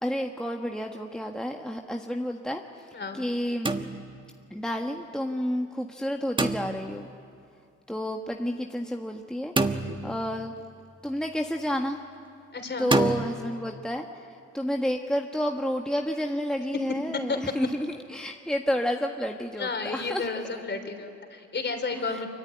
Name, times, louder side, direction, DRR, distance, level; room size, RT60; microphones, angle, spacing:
voice 1, 0.0-2.6 3.1-3.8 4.5-7.1 7.9-9.5 10.0-10.5 11.0-12.0 12.8-14.0 14.5-20.6 21.9-22.3, equal, ahead, 2 dB, 1.3 m, -30 dB
sound 1, 3.6-4.4 6.4-7.1 9.6-10.4 12.9-13.2, right 2 dB, 15° right, 1.3 m, -27 dB
voice 2, 12.5-12.9 17.3-17.4 19.6-22.3, left 4 dB, 35° left, 6 dB, 3.7 m, -32 dB
25.0 x 23.5 x 9.8 m, 2.4 s
cardioid pair, 90°, 30 cm